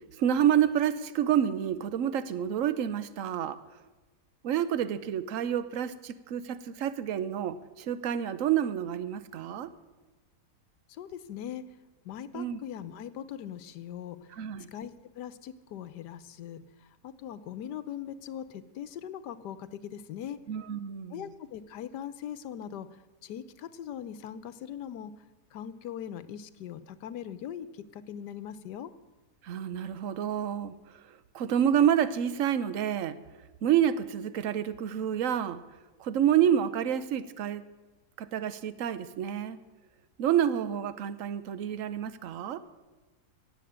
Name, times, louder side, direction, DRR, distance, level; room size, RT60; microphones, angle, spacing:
voice 1, 0.2-3.6 4.4-9.7 12.3-12.6 14.4-14.7 20.5-21.3 29.4-30.7 31.3-33.2 33.6-35.6 36.0-37.6 38.2-39.6 40.2-42.6, right 9 dB, 60° right, 14 dB, 1.0 m, -28 dB
voice 2, 10.9-11.7 12.0-14.2 14.7-16.6 17.0-20.4 21.1-22.9 23.2-25.1 25.5-28.9, left 9 dB, 85° left, 14 dB, 1.4 m, -40 dB
17.0 x 7.8 x 8.6 m, 1.2 s
omnidirectional pair, 1.7 m